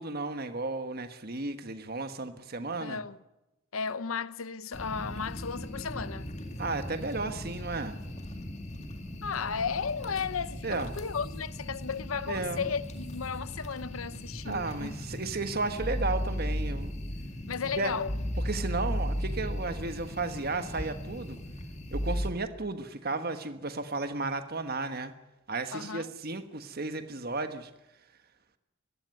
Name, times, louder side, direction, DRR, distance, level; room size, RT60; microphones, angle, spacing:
voice 1, 0.0-3.0 6.6-8.0 10.6-11.0 12.3-12.7 14.4-16.9 17.8-17.9 18.4-21.4 21.9-25.1 25.5-27.7, right 3 dB, 50° right, 1.4 m, -34 dB
voice 2, 2.8-3.2 3.7-6.3 9.2-15.0 17.5-18.1 25.7-26.1, left 6 dB, 90° left, 0.8 m, -34 dB
sound 1, 4.7-22.3, equal, 35° left, 2.1 m, -36 dB
21.5 x 15.5 x 9.6 m
head